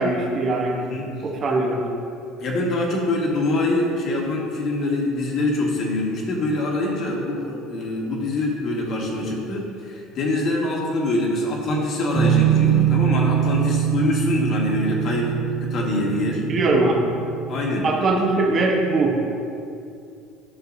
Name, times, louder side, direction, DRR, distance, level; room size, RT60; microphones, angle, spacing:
voice 1, 0.0-0.8 1.2-1.8 16.5-17.1 17.8-19.3, right 2 dB, 40° right, 0 dB, 1.1 m, -21 dB
voice 2, 0.7-1.1 2.4-15.3 15.6-16.4 17.5-17.8 18.1-18.2, left 2 dB, 50° left, -2 dB, 1.6 m, -24 dB
sound 1, 12.1-17.7, right 9 dB, 5° left, 1.5 m, -23 dB
11.0 x 6.4 x 2.7 m, 2.6 s
supercardioid pair, 110°, 0 cm